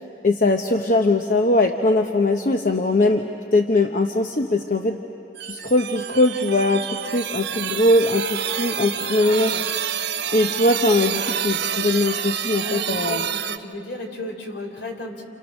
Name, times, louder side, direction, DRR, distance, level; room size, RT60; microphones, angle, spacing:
voice 1, 0.2-3.2 3.5-5.0 5.4-9.5 10.3-13.3, left 2 dB, 45° left, 4 dB, 0.9 m, -20 dB
sound 1, 5.4-13.6, right 9 dB, 65° right, 0.8 m, -28 dB
voice 2, 9.2-9.6 12.5-15.2, left 1 dB, 70° left, 3 dB, 3.7 m, -34 dB
29.5 x 29.0 x 6.4 m, 2.8 s
head